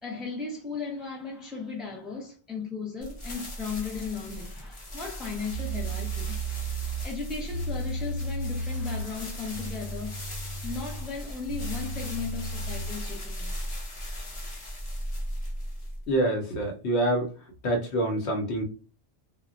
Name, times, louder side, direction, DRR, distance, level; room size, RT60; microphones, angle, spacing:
voice 1, 0.0-6.4 7.0-10.2 10.6-13.5, left 4 dB, ahead, 0.3 m, -36 dB
sound 1, 3.0-16.1, equal, 35° left, 0.6 m, -37 dB
sound 2, 5.5-13.0, right 2 dB, 55° right, 0.6 m, -35 dB
voice 2, 16.1-17.3 17.6-18.6, right 1 dB, 80° left, 1.0 m, -26 dB
2.1 x 2.1 x 3.6 m
omnidirectional pair, 1.1 m